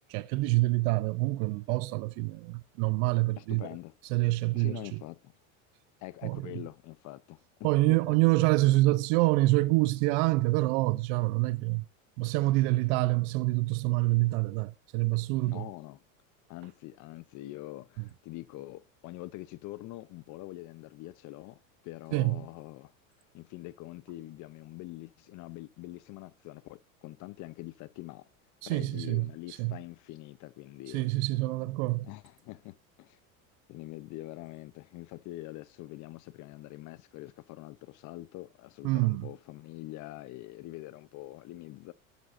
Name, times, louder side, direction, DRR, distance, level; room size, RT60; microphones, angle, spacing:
voice 1, 0.1-3.7 4.1-4.7 6.2-6.4 7.6-11.8 12.2-15.6 22.1-22.4 28.6-29.7 30.9-32.1 38.8-39.3, right 20 dB, 65° right, 0.7 m, -26 dB
voice 2, 3.4-3.9 4.5-5.3 6.0-8.2 12.6-12.8 15.4-16.0 16.5-22.9 23.3-28.3 28.6-31.1 32.0-33.2 33.7-41.9, left 17 dB, 45° left, 0.7 m, -44 dB
12.5 x 10.0 x 2.6 m
supercardioid pair, 115°, 40 cm